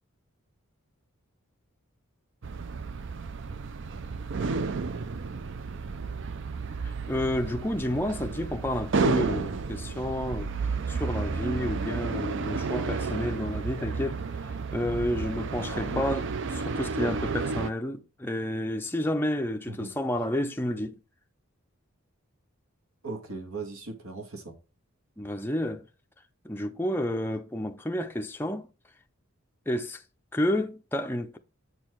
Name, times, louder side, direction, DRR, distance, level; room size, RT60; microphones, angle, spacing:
sound 1, 2.4-17.7, right 4 dB, 55° right, 0.5 m, -32 dB
voice 1, 6.8-10.5 10.9-16.2 16.6-20.9 25.2-25.9 26.4-28.7 29.7-30.0 30.3-31.4, left 1 dB, 10° left, 0.5 m, -30 dB
voice 2, 15.7-16.0 17.0-17.3 19.7-19.9 23.0-24.5, right 2 dB, 75° right, 1.7 m, -38 dB
8.0 x 4.5 x 4.5 m
head